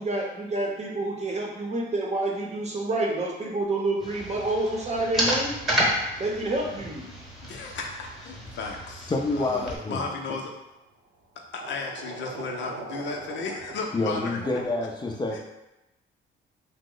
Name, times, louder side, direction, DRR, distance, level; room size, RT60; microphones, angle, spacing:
voice 1, 0.0-5.6 6.2-7.0, right 2 dB, 35° right, 0 dB, 0.7 m, -28 dB
sound 1, 4.0-9.8, equal, ahead, 1.0 m, -31 dB
voice 2, 7.4-10.5 11.5-14.6 15.3-15.4, left 4 dB, 70° left, 1 dB, 0.6 m, -35 dB
voice 3, 9.1-10.1 13.9-15.4, left 2 dB, 20° left, 1 dB, 0.5 m, -28 dB
sound 2, 9.9-10.3 11.6-14.7, right 3 dB, 70° right, 0.6 m, -41 dB
2.9 x 2.0 x 3.7 m, 0.95 s
cardioid pair, 90°, 20 cm